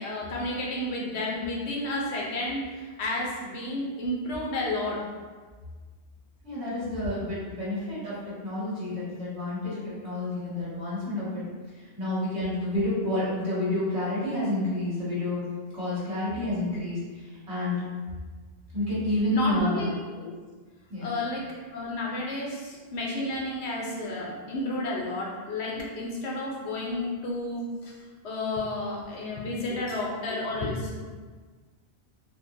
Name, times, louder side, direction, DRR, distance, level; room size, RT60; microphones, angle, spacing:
voice 1, 0.0-5.0 19.3-20.3 21.0-21.4 21.7-27.9 28.2-31.0, left 1 dB, 80° left, -4 dB, 1.0 m, -31 dB
voice 2, 6.4-11.4 12.0-15.4 15.7-17.8 18.7-19.9 20.9-21.1 29.7-29.8 30.5-30.7, left 1 dB, 75° right, -9 dB, 1.7 m, -29 dB
4.1 x 2.2 x 2.7 m, 1.4 s
omnidirectional pair, 1.1 m